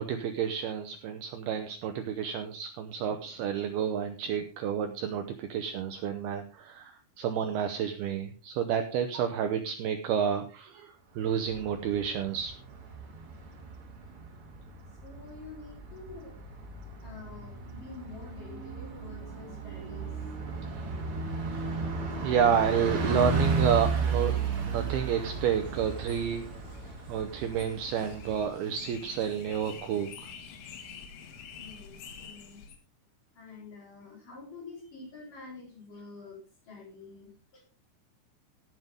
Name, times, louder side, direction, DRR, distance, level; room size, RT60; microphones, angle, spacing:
voice 1, 0.0-12.5 22.2-24.3 24.7-26.4 27.1-30.3, right 8 dB, 80° right, 7 dB, 2.3 m, -30 dB
Bus, 11.3-28.4, right 4 dB, 45° right, 2.0 m, -34 dB
voice 2, 15.0-16.4 17.0-20.3 20.9-21.1 24.4-24.5 31.6-32.6 33.3-37.6, left 3 dB, 45° left, -2 dB, 5.2 m, -48 dB
sound 1, 25.7-32.8, left 6 dB, 80° left, 4.4 m, -48 dB
17.5 x 7.7 x 3.6 m, 0.36 s
omnidirectional pair, 5.6 m